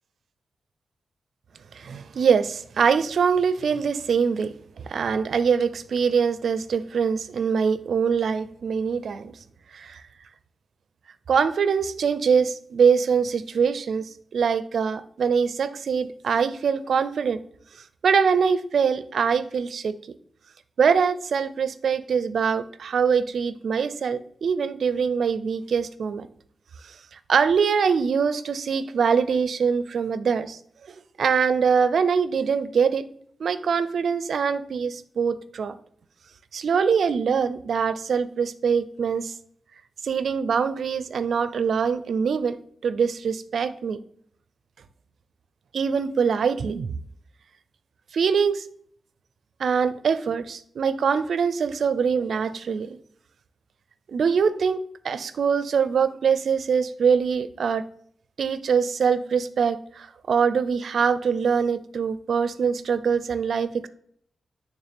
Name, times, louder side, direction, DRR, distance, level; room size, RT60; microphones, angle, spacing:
voice 1, 1.7-4.5 4.9-9.3 9.7-10.0 11.3-17.4 18.0-20.0 20.8-26.3 27.3-30.6 30.9-33.1 33.4-35.7 36.5-39.3 40.0-42.6 42.8-44.0 45.7-46.9 48.1-48.7 49.6-53.0 54.1-57.9 58.4-63.9, right 6 dB, 65° right, 0.4 m, -23 dB
8.9 x 3.5 x 3.4 m
wide cardioid pair, 145°, 0 cm